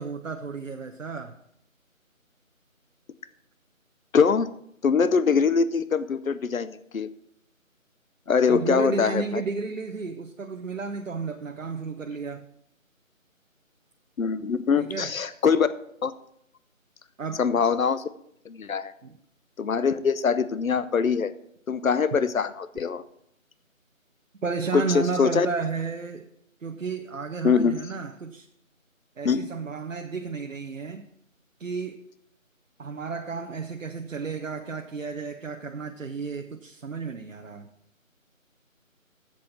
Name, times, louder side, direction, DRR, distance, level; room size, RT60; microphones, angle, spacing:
voice 1, 0.0-1.4 8.5-12.5 14.8-15.4 17.2-17.7 19.0-19.2 24.4-26.3 26.6-28.5 29.2-31.1 31.6-32.0 32.8-37.7, right 4 dB, 70° right, 5 dB, 0.8 m, -32 dB
voice 2, 4.1-4.5 4.8-7.1 8.3-9.4 14.2-15.7 16.0-16.1 17.4-18.0 18.5-18.9 19.6-21.3 21.7-23.0 24.7-25.5 27.4-27.8 29.2-29.5, left 6 dB, 75° left, 14 dB, 0.8 m, -23 dB
8.8 x 7.7 x 5.8 m, 0.72 s
figure-of-eight pair, 165°, 41 cm